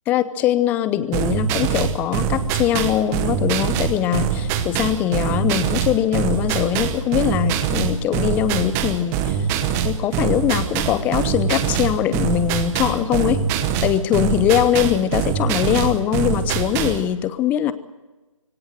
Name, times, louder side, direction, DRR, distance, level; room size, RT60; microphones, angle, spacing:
voice 1, 0.1-9.5 9.8-13.4 13.8-17.7, left 11 dB, 10° left, 15 dB, 0.7 m, -21 dB
sound 1, 1.1-17.0, right 8 dB, 15° right, 1.1 m, -23 dB
24.0 x 17.5 x 7.8 m, 1.1 s
figure-of-eight pair, 150°, 18 cm